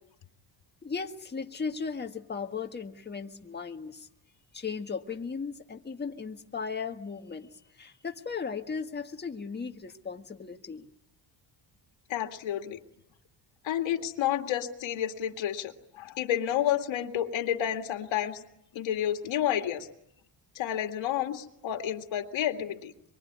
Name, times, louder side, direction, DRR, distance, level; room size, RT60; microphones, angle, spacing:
voice 1, 0.8-4.1 4.5-10.9, left 5 dB, 20° left, 4 dB, 1.7 m, -36 dB
voice 2, 12.1-12.8 13.6-18.4 18.7-19.9 20.6-22.9, left 11 dB, 75° left, 5 dB, 2.3 m, -30 dB
25.5 x 24.0 x 9.5 m, 0.76 s
cardioid pair, 140°, 47 cm